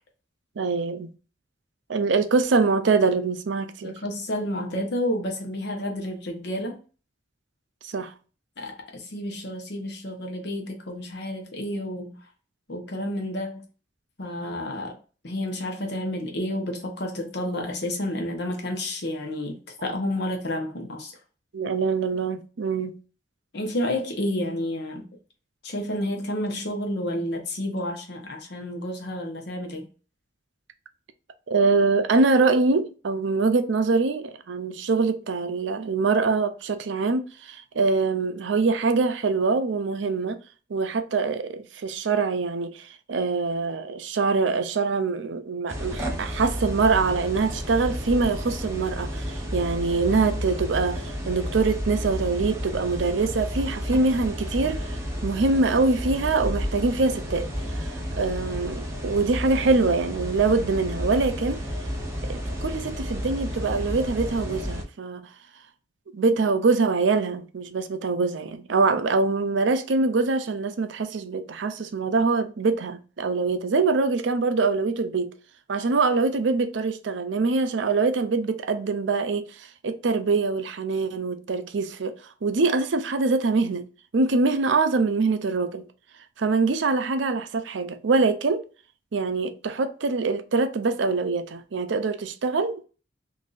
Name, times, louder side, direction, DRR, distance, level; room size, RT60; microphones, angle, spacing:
voice 1, 0.6-1.1 1.9-4.0 7.8-8.1 21.5-23.0 31.5-40.4 40.7-57.5 57.7-61.6 62.3-65.3 66.1-75.3 75.7-82.1 82.4-83.9 84.1-85.9 86.4-88.6 89.1-92.8, right 4 dB, 70° right, 0.5 m, -24 dB
voice 2, 3.8-6.8 8.6-12.2 12.7-13.6 14.2-15.0 15.2-21.1 23.5-25.1 25.6-29.9, left 1 dB, 60° left, 0.9 m, -30 dB
sound 1, 45.7-64.8, equal, 15° right, 0.8 m, -31 dB
3.9 x 2.7 x 2.5 m
head